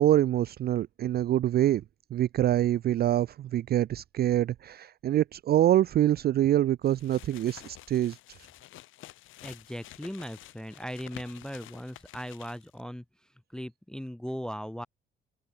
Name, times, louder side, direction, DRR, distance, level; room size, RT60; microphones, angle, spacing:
voice 1, 0.0-1.8 2.1-8.4, right 12 dB, 50° right, 0.4 m, -25 dB
sound 1, 6.8-12.8, left 15 dB, 90° left, 4.7 m, -50 dB
voice 2, 9.4-13.0 13.5-14.9, equal, 5° left, 0.5 m, -38 dB
cardioid pair, 90°, 20 cm